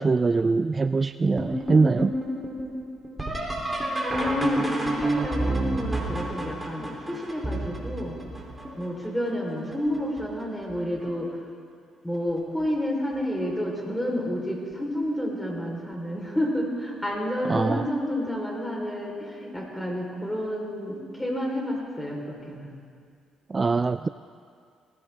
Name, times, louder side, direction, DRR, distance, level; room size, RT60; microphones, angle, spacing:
voice 1, 0.0-2.1 17.5-17.8 23.5-24.1, right 4 dB, 35° right, 13 dB, 0.3 m, -23 dB
sound 1, 1.4-9.1 9.7-10.2 10.7-11.3 12.6-12.7 13.4-13.8 15.9-16.0 18.3-18.4, right 1 dB, 15° right, 3.4 m, -30 dB
voice 2, 4.0-8.2 8.8-11.3 12.0-22.7, left 1 dB, 10° left, 0 dB, 4.2 m, -30 dB
18.5 x 16.5 x 3.6 m, 2.2 s
supercardioid pair, 65°, 0 cm